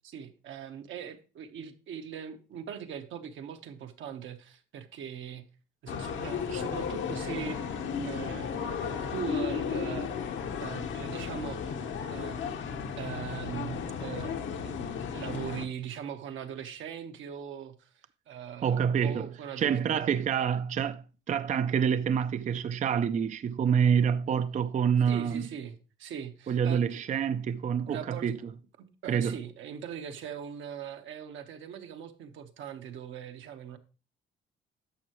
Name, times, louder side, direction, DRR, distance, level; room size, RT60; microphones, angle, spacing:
voice 1, 0.0-5.5 5.8-7.7 8.0-10.1 10.6-11.8 12.1-12.6 13.0-14.4 14.6-14.7 15.1-20.0 25.0-27.0 27.9-28.3 28.8-33.8, right 8 dB, 75° right, 1.2 m, -41 dB
sound 1, 5.9-15.7, left 6 dB, 75° left, 1.0 m, -34 dB
voice 2, 18.6-19.3 19.6-25.5 26.5-28.4 29.1-29.4, right 7 dB, 40° right, 0.4 m, -27 dB
11.0 x 6.8 x 3.0 m
cardioid pair, 90°, 20 cm